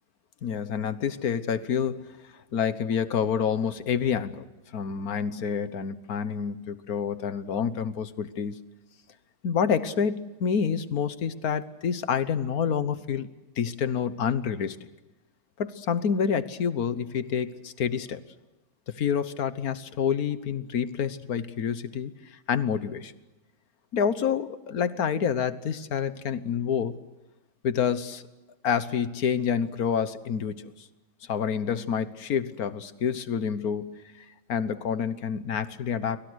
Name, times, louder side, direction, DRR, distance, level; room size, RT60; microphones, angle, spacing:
voice 1, 0.4-2.0 2.5-4.4 4.7-8.6 9.4-13.3 13.6-14.8 15.6-18.2 18.9-22.1 22.5-23.1 23.9-26.9 27.6-28.2 28.6-30.7 31.3-36.2, left 7 dB, 60° left, 13 dB, 1.5 m, -28 dB
29.0 x 23.5 x 6.4 m, 1.1 s
omnidirectional pair, 1.9 m